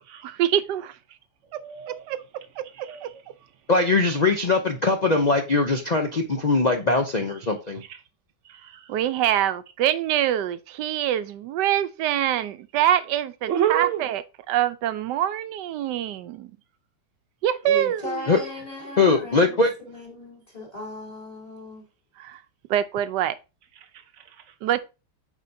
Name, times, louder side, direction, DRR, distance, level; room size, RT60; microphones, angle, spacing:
voice 1, 0.2-1.0 1.5-2.2 2.6-3.1 8.9-14.2 14.5-16.5 17.4-18.4 22.2-22.4 22.7-23.4 24.6-24.8, right 11 dB, 85° right, 1.2 m, -25 dB
voice 2, 1.6-2.1 2.7-3.2 4.2-4.3 6.5-6.6 7.9-8.0 8.4-8.9 12.3-12.5 13.5-14.1 23.8-24.5, right 10 dB, 55° right, 0.9 m, -30 dB
voice 3, 3.7-7.8 18.3-18.4 19.0-19.7, left 3 dB, 80° left, 0.3 m, -21 dB
voice 4, 17.6-21.9, left 2 dB, 20° left, 3.4 m, -37 dB
8.2 x 4.9 x 2.6 m
omnidirectional pair, 1.8 m